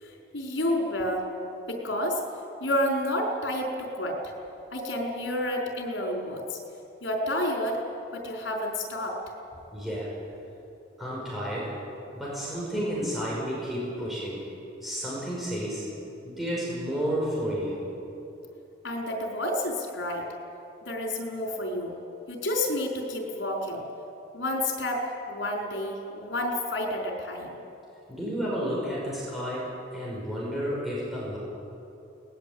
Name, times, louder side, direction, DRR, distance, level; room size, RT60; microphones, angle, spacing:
voice 1, 0.0-1.2 1.7-2.2 2.6-4.3 4.7-6.6 7.0-7.8 8.1-9.2 18.8-20.2 20.8-22.0 22.3-23.8 24.3-27.6, left 1 dB, 80° left, 0 dB, 4.7 m, -30 dB
voice 2, 9.7-10.1 11.0-11.8 12.1-14.4 14.8-15.9 16.2-17.8 28.1-31.4, equal, ahead, -7 dB, 5.8 m, -31 dB
22.0 x 19.5 x 8.8 m, 2.8 s
head